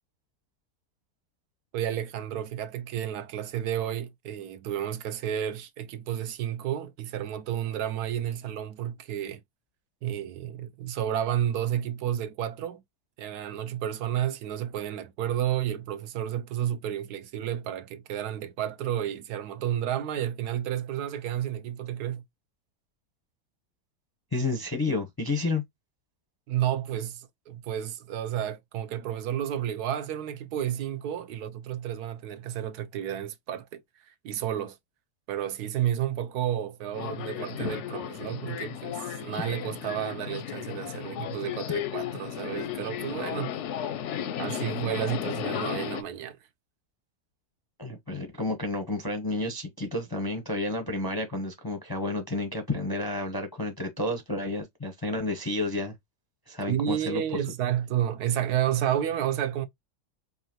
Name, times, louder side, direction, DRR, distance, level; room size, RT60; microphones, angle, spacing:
voice 1, 1.7-9.4 10.0-12.8 13.2-22.2 26.5-34.8 35.3-43.5 44.4-46.4 56.7-59.7, right 10 dB, 85° right, 1.2 m, -31 dB
voice 2, 24.3-25.6 47.8-55.9 56.5-57.4, left 2 dB, 25° left, 0.4 m, -31 dB
Subway metro underground, 36.9-46.0, left 10 dB, 65° left, 0.7 m, -34 dB
4.7 x 2.7 x 2.8 m
omnidirectional pair, 1.6 m